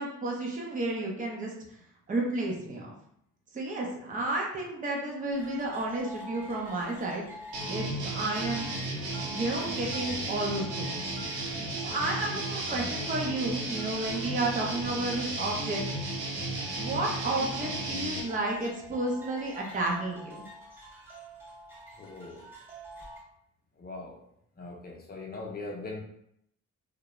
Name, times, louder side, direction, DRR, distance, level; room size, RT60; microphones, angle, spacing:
voice 1, 0.0-1.5 2.1-2.9 3.5-7.3 7.7-8.7 9.3-11.0 11.8-15.8 16.8-20.4, right 2 dB, 25° right, -1 dB, 0.6 m, -32 dB
sound 1, 5.3-23.2, right 1 dB, 5° right, 0.9 m, -47 dB
sound 2, 7.5-18.2, right 2 dB, 80° right, 0.8 m, -34 dB
voice 2, 22.0-22.5 23.8-24.2 24.6-26.0, left 3 dB, 30° left, 0 dB, 0.7 m, -40 dB
2.4 x 2.0 x 3.0 m, 0.73 s
cardioid pair, 90°, 30 cm